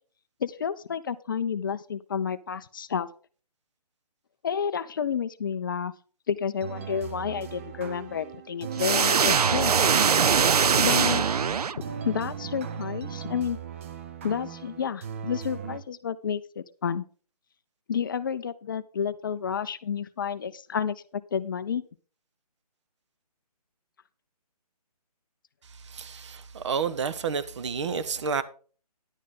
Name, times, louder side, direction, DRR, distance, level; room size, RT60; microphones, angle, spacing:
voice 1, 0.4-3.1 4.4-5.9 6.3-9.7 10.8-11.2 12.0-13.6 14.2-17.0 17.9-21.8, left 7 dB, 30° left, 0.5 m, -30 dB
sound 1, 6.6-15.8, right 7 dB, 20° right, 0.5 m, -38 dB
sound 2, 8.8-12.2, right 6 dB, 70° right, 0.5 m, -22 dB
voice 2, 25.7-28.4, right 6 dB, 45° right, 1.0 m, -30 dB
10.5 x 9.1 x 3.7 m
figure-of-eight pair, 150°, 20 cm